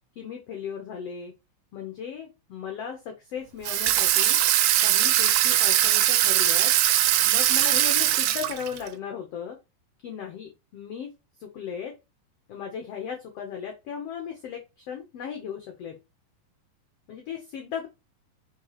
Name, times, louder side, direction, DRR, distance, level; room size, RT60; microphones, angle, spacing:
voice 1, 0.2-1.3 1.7-4.4 4.8-6.7 7.3-9.6 10.0-11.1 11.4-11.9 12.5-16.0 17.1-17.9, left 7 dB, 75° left, 3 dB, 1.4 m, -36 dB
Water tap faucet / Sink (filling or washing), 3.7-8.9, right 13 dB, 80° right, 2.1 m, -21 dB
4.8 x 4.5 x 4.8 m, 0.25 s
omnidirectional pair, 4.2 m